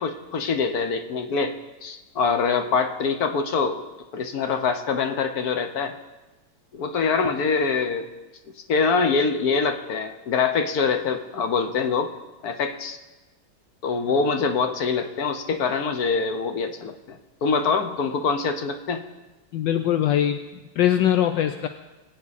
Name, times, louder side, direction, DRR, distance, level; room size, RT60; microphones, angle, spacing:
voice 1, 0.0-1.5 1.8-3.8 4.1-5.9 6.7-8.1 8.7-12.1 12.4-13.0 13.8-19.0, left 5 dB, 55° left, 7 dB, 1.3 m, -24 dB
voice 2, 19.5-20.4 20.8-21.7, left 11 dB, 75° left, 8 dB, 1.2 m, -21 dB
23.0 x 8.6 x 4.2 m, 1.1 s
omnidirectional pair, 2.2 m